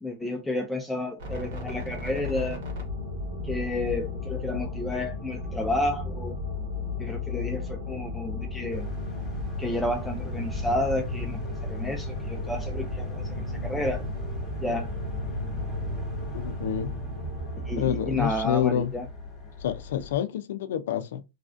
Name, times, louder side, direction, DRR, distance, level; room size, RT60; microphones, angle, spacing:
voice 1, 0.0-2.6 3.4-6.4 7.0-8.9 9.6-11.4 11.7-14.0 14.6-14.9 17.7-19.0, left 1 dB, 5° left, 0.3 m, -31 dB
sound 1, 1.2-17.8, left 3 dB, 70° right, 1.4 m, -35 dB
sound 2, 8.7-20.2, equal, 20° left, 1.1 m, -35 dB
voice 2, 16.3-16.9 17.8-18.9 19.6-21.2, left 10 dB, 70° left, 0.4 m, -28 dB
3.1 x 2.4 x 2.4 m
supercardioid pair, 150°, 0 cm